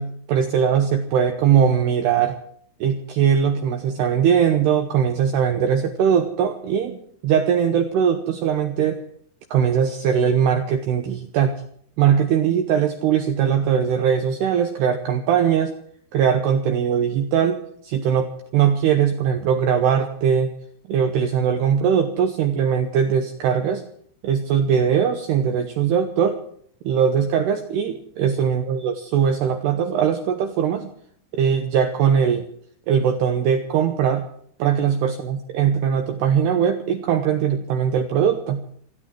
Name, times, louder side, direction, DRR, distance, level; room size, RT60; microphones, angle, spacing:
voice 1, 0.0-2.4 2.8-7.0 7.2-9.0 9.5-11.6 12.0-15.7 16.1-20.5 20.9-23.8 24.2-26.4 26.8-30.9 31.3-32.5 32.9-34.3 34.6-38.6, right 8 dB, 80° right, 6 dB, 2.5 m, -20 dB
28.0 x 11.0 x 4.5 m, 0.63 s
omnidirectional pair, 5.8 m